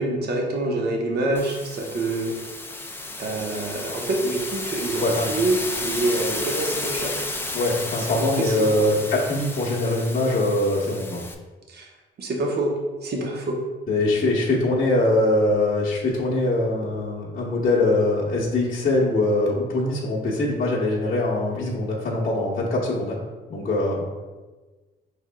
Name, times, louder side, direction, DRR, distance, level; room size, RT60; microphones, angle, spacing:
voice 1, 0.0-2.3 3.2-7.2 8.4-8.9 11.7-11.9 12.2-12.7 13.0-13.6, right 2 dB, 55° right, 0 dB, 0.8 m, -26 dB
sound 1, 1.3-11.3, left 2 dB, 10° left, 0.4 m, -32 dB
voice 2, 5.0-5.3 7.5-11.2 13.9-23.2 23.5-24.0, left 2 dB, 45° left, -7 dB, 0.9 m, -22 dB
4.6 x 3.5 x 2.2 m, 1.3 s
cardioid pair, 90°, 20 cm